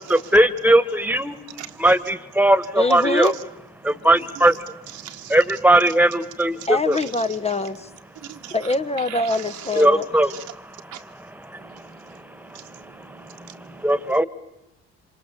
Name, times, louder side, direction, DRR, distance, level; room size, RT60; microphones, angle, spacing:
voice 1, 0.0-1.4 1.8-3.3 3.9-4.5 5.3-7.0 9.8-10.3 13.8-14.2, right 1 dB, 5° right, 1.7 m, -18 dB
voice 2, 2.7-3.3 6.7-7.9 8.5-10.1, left 2 dB, 20° left, 1.0 m, -24 dB
voice 3, 4.9-5.4 6.6-6.7 6.9-7.0 8.2-8.6 9.0-9.8 10.3-10.4 10.9-11.0 11.6-12.2 12.5-13.9, right 11 dB, 65° right, 1.6 m, -40 dB
28.0 x 26.0 x 7.0 m
hypercardioid pair, 50°, 32 cm